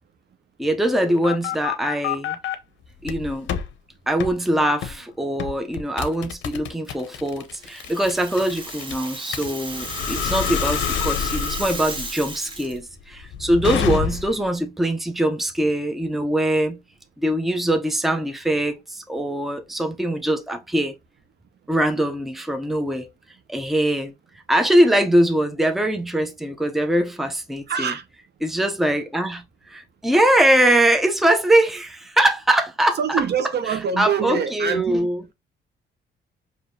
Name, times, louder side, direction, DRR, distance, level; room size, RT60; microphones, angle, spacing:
voice 1, 0.6-2.4 3.0-3.5 4.1-16.8 17.2-20.9 21.7-23.1 23.5-24.1 24.5-27.9 28.4-33.2 33.7-35.2, right 1 dB, ahead, 0.6 m, -22 dB
sound 1, 0.8-2.6 3.0-3.7 4.2-4.4 4.8-5.0 5.4-14.4, left 8 dB, 70° left, 0.6 m, -28 dB
Rattle (instrument), 7.5-12.8, right 2 dB, 25° right, 1.0 m, -34 dB
voice 2, 27.7-28.0 33.0-35.3, right 7 dB, 55° right, 0.8 m, -25 dB
4.9 x 2.7 x 2.7 m
cardioid pair, 90°, 20 cm